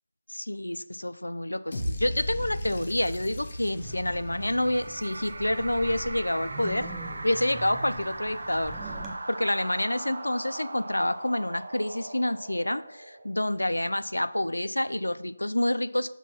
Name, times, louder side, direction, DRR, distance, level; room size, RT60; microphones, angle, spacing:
voice 1, 0.3-6.9 7.2-8.8 9.3-16.1, left 1 dB, 85° left, 14 dB, 0.4 m, -28 dB
sound 1, 1.7-5.8, left 1 dB, 45° left, 1.4 m, -36 dB
Wind, 3.6-9.1, right 2 dB, 10° right, 0.7 m, -42 dB
sound 2, 3.9-13.6, right 2 dB, 60° right, 0.8 m, -40 dB
5.8 x 4.1 x 5.7 m, 0.73 s
figure-of-eight pair, 155°, 0 cm